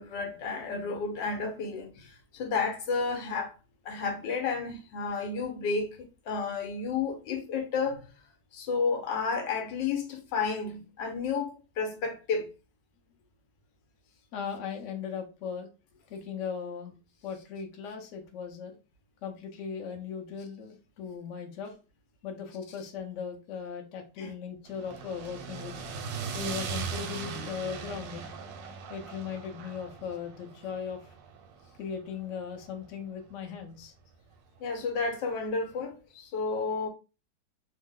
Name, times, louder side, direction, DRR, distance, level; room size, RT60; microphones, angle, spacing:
voice 1, 0.0-3.5 3.8-6.0 6.3-8.0 8.5-12.5 24.2-24.3 34.6-36.9, left 4 dB, 85° left, 1.4 m, -31 dB
voice 2, 14.3-15.7 16.1-16.9 17.2-18.7 19.2-21.8 22.2-25.7 26.3-28.3 28.9-31.1 31.8-33.9, left 7 dB, 60° left, 0.8 m, -38 dB
lancaster bomber, 24.7-32.9, right 5 dB, 85° right, 1.3 m, -39 dB
3.2 x 2.0 x 3.6 m
omnidirectional pair, 1.9 m